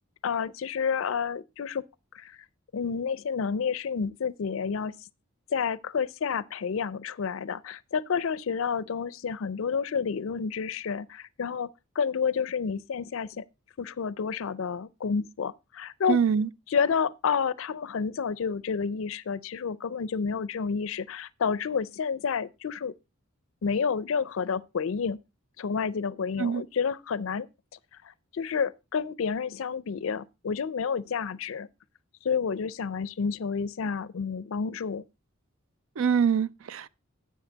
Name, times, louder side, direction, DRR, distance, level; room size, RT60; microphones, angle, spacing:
voice 1, 0.2-1.8 2.1-2.4 2.7-4.9 5.5-11.7 12.0-13.4 13.8-16.2 16.7-22.9 23.6-25.2 25.6-27.5 28.3-31.7 32.2-35.0, left 6 dB, 70° left, 0.4 m, -30 dB
voice 2, 16.1-16.5 26.4-26.6 36.0-36.9, right 7 dB, 70° right, 0.4 m, -24 dB
10.0 x 7.6 x 3.9 m
head